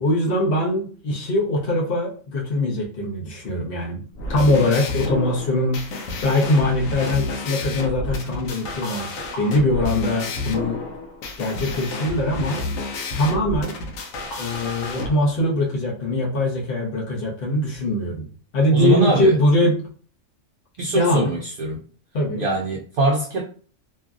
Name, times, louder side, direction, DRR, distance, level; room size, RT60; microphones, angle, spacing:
voice 1, 0.0-4.0 4.3-10.8 11.4-12.6 13.2-13.8 14.4-18.3 18.5-19.8 20.9-21.3 22.1-22.5, left 1 dB, 45° left, 1.0 m, -22 dB
sound 1, 4.1-15.1, left 2 dB, 80° left, 1.1 m, -30 dB
voice 2, 18.7-19.4 20.8-21.8 22.4-23.4, right 2 dB, 70° right, 0.5 m, -22 dB
3.1 x 2.4 x 2.3 m
omnidirectional pair, 1.4 m